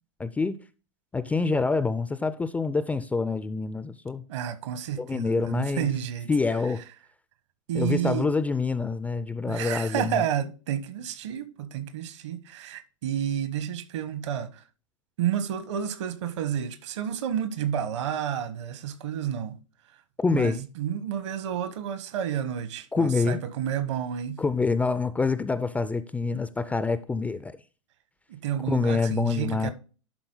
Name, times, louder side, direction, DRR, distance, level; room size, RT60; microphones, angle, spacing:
voice 1, 0.2-0.6 1.1-4.2 5.0-5.9 6.3-6.8 7.7-10.2 20.2-20.6 22.9-23.4 24.4-27.6 28.7-29.7, left 4 dB, 10° left, 0.3 m, -26 dB
voice 2, 4.3-6.3 7.7-8.3 9.4-14.6 15.2-19.6 20.3-24.4 28.3-29.7, right 9 dB, 60° right, 1.2 m, -30 dB
11.5 x 3.8 x 3.8 m
hypercardioid pair, 105°, 17 cm